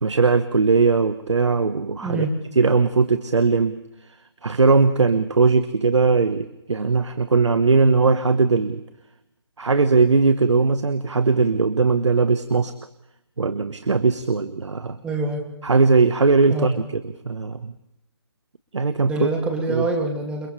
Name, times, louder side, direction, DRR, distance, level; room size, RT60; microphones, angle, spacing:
voice 1, 0.0-2.3 2.5-3.8 4.4-8.8 9.6-12.7 13.4-15.0 15.6-17.7 18.7-19.3 19.7-19.9, right 4 dB, 85° right, 11 dB, 1.3 m, -19 dB
voice 2, 2.0-2.3 15.0-15.4 16.5-16.7 19.1-20.5, right 2 dB, 5° right, 1 dB, 2.6 m, -25 dB
30.0 x 27.0 x 3.4 m, 0.87 s
hypercardioid pair, 160°, 15 cm